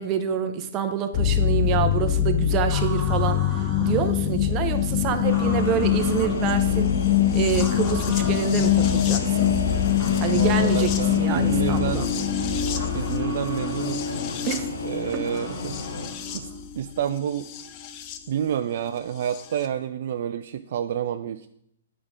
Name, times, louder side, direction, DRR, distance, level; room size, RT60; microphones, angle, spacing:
voice 1, 0.0-7.0 7.3-9.5 10.2-12.1 14.4-14.7, right 9 dB, 30° right, 6 dB, 0.8 m, -27 dB
sound 1, 1.1-18.2 19.3-19.4, left 10 dB, 35° left, 0.7 m, -24 dB
sound 2, 2.7-4.1 5.3-6.4 7.5-8.6 9.9-11.3 12.7-13.9 15.3-16.6, equal, 5° left, 1.7 m, -40 dB
sound 3, 5.2-16.1, left 3 dB, 85° left, 1.2 m, -34 dB
voice 2, 10.3-12.1 12.9-14.0 14.8-15.8 16.3-16.5 16.8-17.5 18.3-21.5, right 9 dB, 55° right, 9 dB, 0.4 m, -29 dB
8.8 x 5.0 x 4.9 m, 0.75 s
hypercardioid pair, 130°, 0 cm